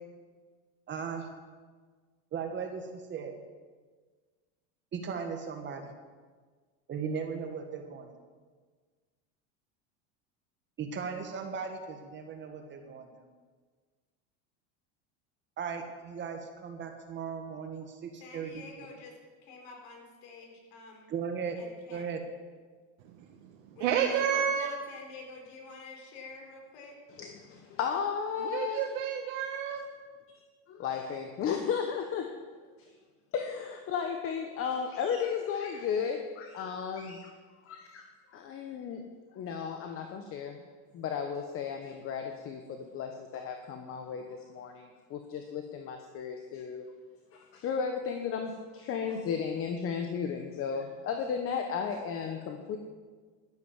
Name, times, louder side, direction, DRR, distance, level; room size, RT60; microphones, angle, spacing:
voice 1, 0.9-1.3 2.3-3.3 4.9-5.9 6.9-8.1 10.8-13.3 15.6-18.9 21.1-21.6 21.9-22.2, right 6 dB, 30° right, 5 dB, 1.6 m, -37 dB
voice 2, 18.2-21.1 21.6-22.1 23.8-27.0, left 3 dB, 70° left, 2 dB, 4.2 m, -48 dB
voice 3, 23.0-24.7 28.4-29.8, right 8 dB, 80° right, 1 dB, 1.5 m, -30 dB
voice 4, 27.2-28.8 30.7-32.3 32.8-32.9 33.3-37.4 37.6-39.0 39.3-40.6 40.9-46.9 47.3-52.8, left 7 dB, 40° left, 5 dB, 1.2 m, -34 dB
12.0 x 10.5 x 7.4 m, 1.5 s
supercardioid pair, 135°, 35 cm